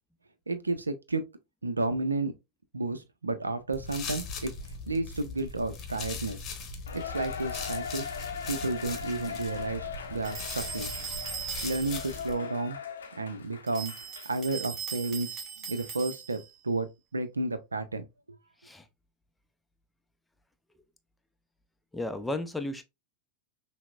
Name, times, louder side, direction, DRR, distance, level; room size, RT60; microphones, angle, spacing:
voice 1, 0.5-1.2 1.6-2.3 2.7-4.5 4.9-6.4 6.9-8.0 8.5-10.9 11.6-12.8 13.2-13.9 14.2-18.1, right 2 dB, 80° right, 0.5 m, -32 dB
sound 1, 3.7-12.3, left 4 dB, 30° left, 0.9 m, -40 dB
Cheering, 6.9-14.6 15.0-15.1 15.8-15.9, left 7 dB, 70° left, 0.6 m, -40 dB
sound 2, 10.2-12.2 13.7-16.5, right 7 dB, 30° right, 1.0 m, -39 dB
voice 2, 21.9-22.8, left 2 dB, 5° left, 0.5 m, -33 dB
5.7 x 2.1 x 2.4 m
figure-of-eight pair, 90°, 0 cm